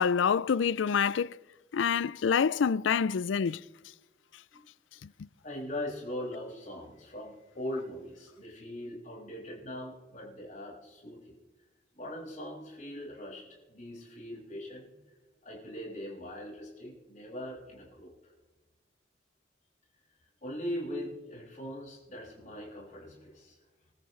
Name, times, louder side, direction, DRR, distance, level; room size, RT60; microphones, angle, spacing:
voice 1, 0.0-1.4 1.7-3.6, left 6 dB, 85° left, 0.4 m, -26 dB
voice 2, 5.4-11.3 11.9-15.0 15.4-18.3 20.4-23.6, left 1 dB, 45° left, 6.4 m, -41 dB
28.0 x 14.0 x 3.3 m
head